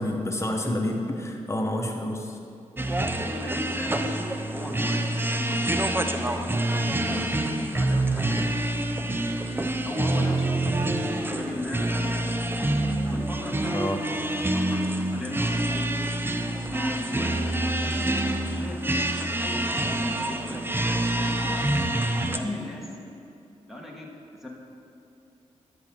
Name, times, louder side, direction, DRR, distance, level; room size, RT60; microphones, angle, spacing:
voice 1, 0.0-2.4 13.7-14.0, left 1 dB, 25° left, 2 dB, 1.2 m, -28 dB
sound 1, 2.8-22.4, right 1 dB, 15° right, 0.6 m, -26 dB
voice 2, 3.1-5.0 5.3-6.6 6.9-9.0 9.8-10.6 11.3-12.2 13.0-13.9 14.5-16.1 16.7-22.0 22.3-22.9 23.7-24.1 24.4-24.5, left 1 dB, ahead, -3 dB, 1.4 m, -37 dB
12.0 x 6.1 x 3.8 m, 2.6 s
cardioid pair, 55°, 12 cm